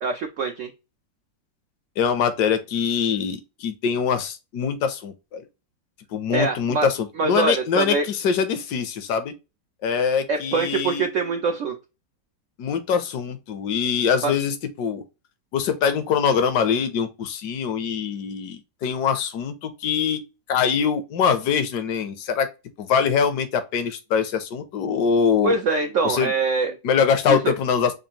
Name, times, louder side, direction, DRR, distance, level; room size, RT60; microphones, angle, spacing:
voice 1, 0.0-0.7 6.3-6.9 7.2-8.1 10.3-11.8 14.2-14.3 25.4-26.8 27.3-27.5, right 4 dB, 80° right, 0.6 m, -24 dB
voice 2, 2.0-5.4 6.1-9.4 9.8-11.1 12.6-15.0 15.5-20.2 20.5-22.5 22.8-25.5 26.0-26.3 26.8-27.9, left 7 dB, 70° left, 1.2 m, -23 dB
5.2 x 2.4 x 2.8 m
omnidirectional pair, 1.9 m